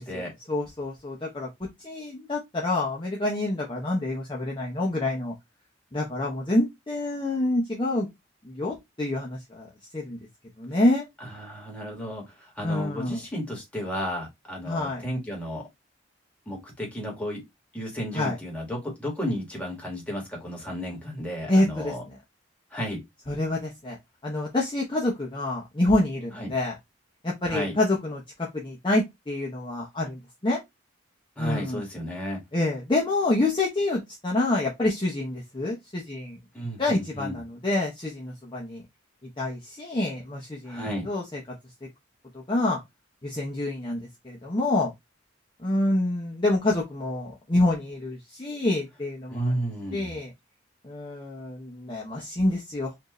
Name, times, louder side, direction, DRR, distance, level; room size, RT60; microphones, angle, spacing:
voice 1, 0.0-5.3 5.9-8.1 8.4-9.7 9.9-10.2 10.6-11.1 12.6-13.2 14.7-15.0 18.1-18.4 21.5-22.2 23.3-24.0 24.2-26.7 27.2-30.6 31.4-31.8 32.5-36.4 36.8-38.8 39.4-41.4 41.8-41.9 42.5-42.8 43.2-44.9 45.6-49.5 49.9-50.3 50.8-52.9, left 2 dB, 25° left, 0.8 m, -27 dB
voice 2, 11.2-15.6 16.4-17.4 17.7-22.0 22.7-23.0 26.4-26.5 27.4-27.8 31.4-32.4 36.5-37.4 40.7-41.1 49.3-50.2, equal, 5° left, 1.7 m, -33 dB
4.4 x 2.7 x 3.0 m
head